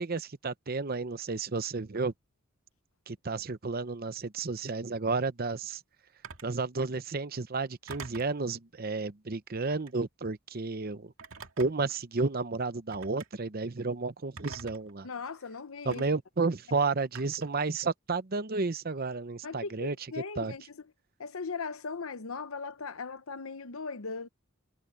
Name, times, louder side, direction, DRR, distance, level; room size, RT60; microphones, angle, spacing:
voice 1, 0.0-2.1 3.1-5.8 6.4-11.1 11.6-15.1 15.8-19.9 20.4-20.5, right 4 dB, 45° right, 0.8 m, -32 dB
Telephone, 6.2-6.6 7.9-8.4 9.6-10.0 11.2-11.9 12.9-13.3 14.4-14.9 15.9-16.0 17.1-17.6, right 5 dB, 70° right, 2.7 m, -45 dB
voice 2, 15.0-16.1 19.4-20.8 21.2-24.3, left 4 dB, 90° left, 0.9 m, -38 dB
head